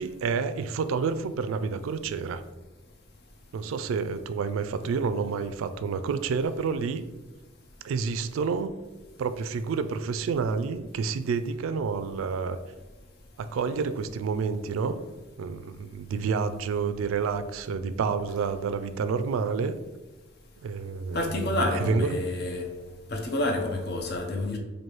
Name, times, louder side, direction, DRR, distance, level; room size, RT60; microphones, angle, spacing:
voice 1, 0.0-2.4 3.5-7.0 7.8-8.7 9.2-12.6 13.4-15.0 15.4-19.7 20.6-21.3 21.8-22.1, right 5 dB, 85° right, 11 dB, 0.3 m, -29 dB
voice 2, 21.1-22.7 23.1-24.6, left 1 dB, 50° left, 2 dB, 0.5 m, -28 dB
3.1 x 2.6 x 4.4 m, 1.1 s
head